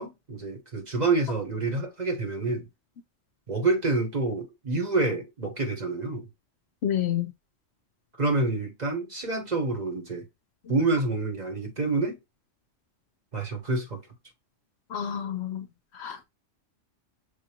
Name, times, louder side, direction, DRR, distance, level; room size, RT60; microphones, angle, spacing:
voice 1, 0.0-2.6 3.5-6.3 8.2-10.3 10.7-12.2 13.3-14.0, right 3 dB, 35° right, 1.1 m, -27 dB
voice 2, 6.8-7.3 14.9-15.7 15.9-16.2, left 10 dB, 65° left, 0.8 m, -29 dB
6.5 x 2.5 x 2.8 m
omnidirectional pair, 1.3 m